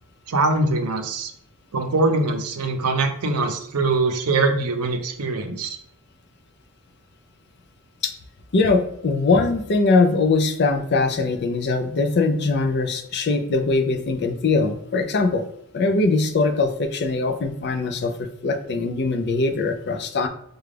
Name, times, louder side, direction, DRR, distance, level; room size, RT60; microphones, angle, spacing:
voice 1, 0.3-1.3 1.7-5.8, right 3 dB, 80° right, 6 dB, 0.6 m, -22 dB
voice 2, 8.5-15.4 15.7-20.3, left 3 dB, 50° left, 7 dB, 0.5 m, -21 dB
4.9 x 2.3 x 3.3 m, 0.70 s
head